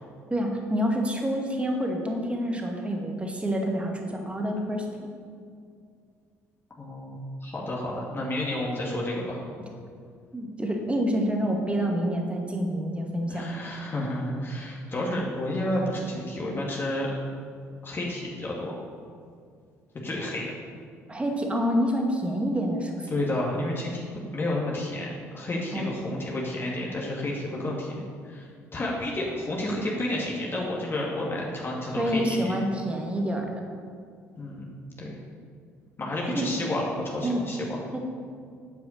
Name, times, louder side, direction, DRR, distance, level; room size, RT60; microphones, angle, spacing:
voice 1, 0.3-4.9 10.3-13.4 21.1-23.2 25.7-25.9 31.8-33.5 36.3-36.5 37.2-37.4 37.9-38.0, equal, 15° right, 1 dB, 2.2 m, -27 dB
voice 2, 6.8-9.4 13.3-17.1 17.8-18.7 20.0-20.5 23.1-24.1 24.3-32.7 34.4-34.7 35.0-35.1 36.0-37.8, left 1 dB, 30° left, -4 dB, 2.5 m, -31 dB
9.3 x 8.2 x 6.7 m, 2.2 s
figure-of-eight pair, 50°, 8 cm